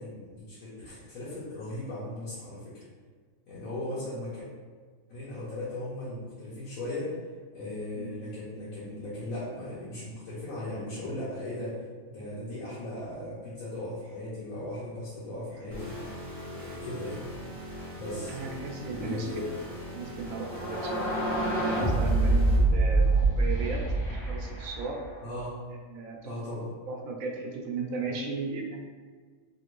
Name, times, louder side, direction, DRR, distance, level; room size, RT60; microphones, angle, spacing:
voice 1, 0.0-2.8 3.5-4.4 5.1-7.1 7.5-11.8 12.1-15.9 16.6-17.3 17.9-18.4 18.8-19.4 22.5-22.7 25.2-25.5 26.2-26.7 28.1-28.2, left 1 dB, 85° left, -9 dB, 1.2 m, -37 dB
sound 1, 15.7-22.6, equal, 10° right, 0.9 m, -41 dB
voice 2, 18.3-19.3 19.9-23.1 23.4-23.8 24.1-25.0 25.7-26.3 26.9-28.8, right 4 dB, 85° right, 1 dB, 1.0 m, -36 dB
sound 2, 20.5-25.3, right 2 dB, 55° left, 1.0 m, -25 dB
3.0 x 2.5 x 3.0 m, 1.5 s
omnidirectional pair, 1.4 m